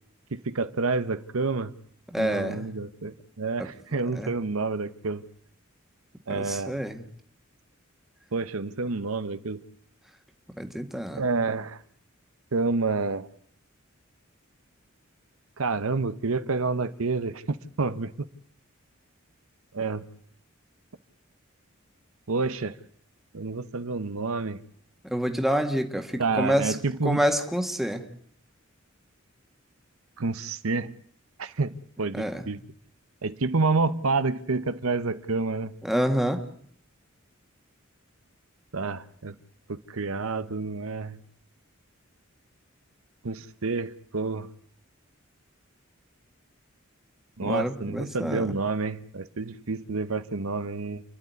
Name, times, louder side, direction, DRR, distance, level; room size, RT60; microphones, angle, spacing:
voice 1, 0.3-1.7 2.2-5.2 6.3-6.8 8.3-9.6 11.2-11.8 12.5-13.3 15.6-18.1 19.7-20.0 22.3-22.8 23.3-24.6 26.2-27.2 30.2-30.9 31.4-31.7 32.0-32.6 33.2-35.7 38.7-39.3 39.7-41.2 43.2-44.5 47.4-51.0, right 3 dB, 85° right, 0.9 m, -28 dB
voice 2, 2.1-2.7 3.6-3.7 4.1-4.3 6.3-7.0 10.6-11.2 25.0-26.8 27.0-28.0 32.1-32.4 35.8-36.4 47.4-48.5, equal, ahead, 1.7 m, -27 dB
29.0 x 11.0 x 9.5 m
head